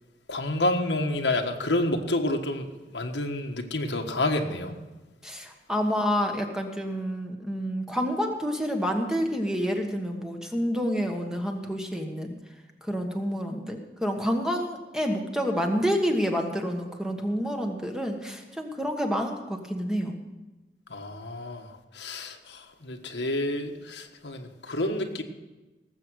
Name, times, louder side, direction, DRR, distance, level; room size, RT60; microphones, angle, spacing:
voice 1, 0.3-4.8 20.9-25.2, left 1 dB, 85° left, 4 dB, 1.5 m, -29 dB
voice 2, 5.2-12.3 12.8-20.2, equal, 5° right, 3 dB, 1.3 m, -28 dB
18.5 x 7.9 x 6.3 m, 1.1 s
head